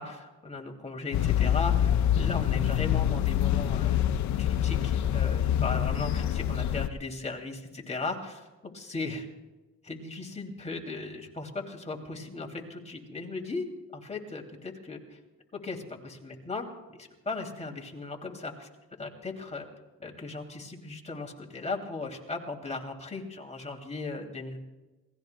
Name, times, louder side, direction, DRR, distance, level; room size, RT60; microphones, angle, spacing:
voice 1, 0.0-4.0 4.4-9.3 9.8-15.2 15.5-18.7 19.0-19.7 20.0-24.6, left 3 dB, 20° left, 1 dB, 2.8 m, -37 dB
sound 1, 1.1-6.9, left 10 dB, 70° left, 0.7 m, -26 dB
28.0 x 19.0 x 2.3 m, 1.2 s
cardioid pair, 90°, 30 cm